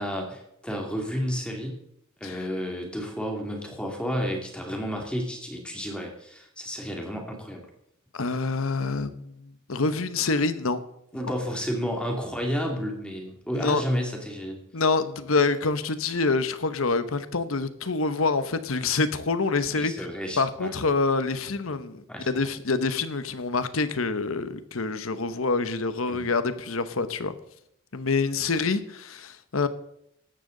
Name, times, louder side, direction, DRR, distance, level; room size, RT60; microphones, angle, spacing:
voice 1, 0.0-1.8 2.2-7.6 11.1-14.6 19.7-20.7 22.1-22.5 26.1-26.2, equal, 5° left, 2.5 m, -31 dB
voice 2, 8.1-10.8 13.5-13.8 14.7-19.9 20.4-27.4 27.9-29.7, left 3 dB, 80° left, 1.0 m, -26 dB
15.5 x 12.0 x 4.0 m
head